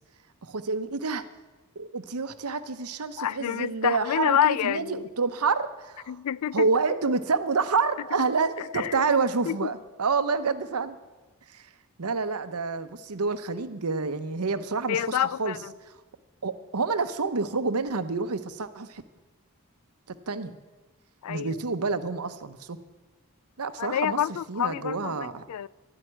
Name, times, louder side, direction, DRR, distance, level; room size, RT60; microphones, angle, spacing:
voice 1, 0.4-1.2 1.8-6.1 6.5-11.0 11.5-11.6 12.0-15.6 16.4-19.0 20.3-20.5 21.3-22.8 23.6-24.2 24.5-25.4, right 4 dB, 85° right, 0.9 m, -28 dB
voice 2, 3.2-5.1 6.1-6.7 8.6-9.0 9.5-9.7 14.9-15.7 21.2-21.6 23.8-25.7, left 10 dB, 85° left, 0.4 m, -28 dB
12.0 x 7.8 x 9.9 m
head